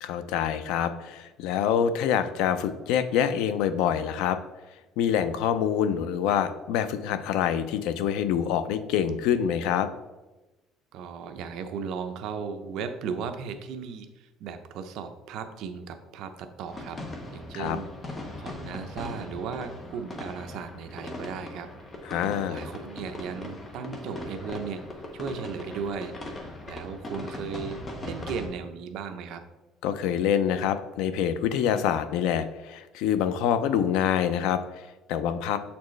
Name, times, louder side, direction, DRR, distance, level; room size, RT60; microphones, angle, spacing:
voice 1, 0.0-4.4 5.0-9.9 17.5-17.8 22.0-22.7 29.8-35.6, left 9 dB, 85° left, 11 dB, 0.4 m, -26 dB
voice 2, 10.9-17.0 17.3-17.9 18.4-21.7 22.5-24.9 25.1-29.4, right 6 dB, 60° right, 7 dB, 0.6 m, -36 dB
sound 1, 16.7-28.5, left 2 dB, 20° left, 0.8 m, -39 dB
6.9 x 4.3 x 3.2 m, 1.1 s
cardioid pair, 165°, 0 cm